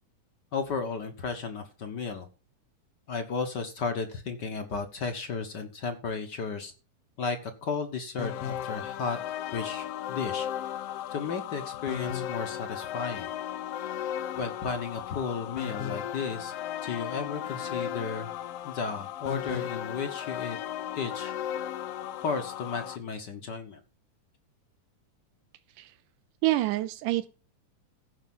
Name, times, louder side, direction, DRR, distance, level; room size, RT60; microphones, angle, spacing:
voice 1, 0.5-2.3 3.1-6.7 7.2-9.2 9.5-10.5 11.1-13.3 14.1-16.5 16.8-18.3 18.6-20.6 20.9-21.3 22.1-23.8, left 5 dB, 55° left, 7 dB, 1.2 m, -34 dB
sound 1, 8.2-23.0, left 11 dB, 75° left, 1.4 m, -35 dB
voice 2, 26.4-27.3, right 16 dB, 90° right, 10 dB, 2.3 m, -27 dB
15.5 x 5.5 x 5.5 m, 0.35 s
omnidirectional pair, 3.6 m